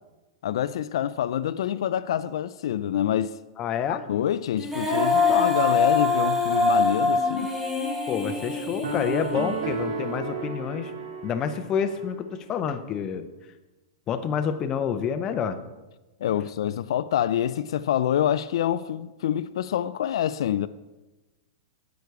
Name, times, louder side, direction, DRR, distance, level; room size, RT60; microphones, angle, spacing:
voice 1, 0.4-3.4 3.9-7.5 16.2-20.7, left 10 dB, 65° left, 0.3 m, -26 dB
voice 2, 3.6-4.0 8.1-10.9 11.2-13.3 14.1-15.6, left 7 dB, 20° left, 0.6 m, -28 dB
Female singing, 4.6-9.8, left 3 dB, 5° right, 1.3 m, -24 dB
sound 1, 8.8-12.1, right 4 dB, 65° right, 1.8 m, -33 dB
9.9 x 8.1 x 4.6 m
supercardioid pair, 165°, 3 cm